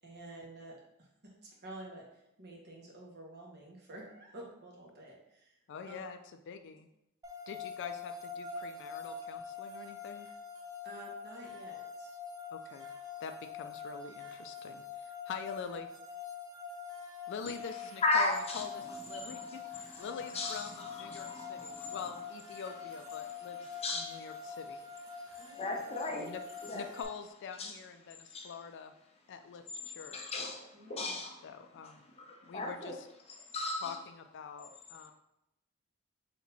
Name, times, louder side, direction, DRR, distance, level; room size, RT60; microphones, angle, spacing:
voice 1, 0.0-5.6 5.9-6.0 10.8-12.1 25.4-26.0 30.7-31.2, right 1 dB, 50° right, -2 dB, 1.3 m, -50 dB
voice 2, 5.7-6.2 6.5-6.9 7.5-10.3 12.5-12.9 13.2-15.9 17.3-24.8 26.2-26.4 26.7-28.9 29.3-30.2 31.4-32.1 32.5-33.1 33.8-35.1, left 6 dB, 55° left, 7 dB, 0.3 m, -45 dB
sound 1, 7.2-27.0, left 5 dB, 20° right, 0.9 m, -45 dB
voice 3, 18.0-18.6 19.1-20.0 20.3-22.0 23.6-24.3 25.1-26.3 26.7-26.8 27.6-27.7 28.3-28.5 30.1-31.4 32.3-32.9 33.5-34.0 34.6-34.7, left 2 dB, 30° left, 1 dB, 0.7 m, -36 dB
4.4 x 2.9 x 4.1 m, 0.85 s
head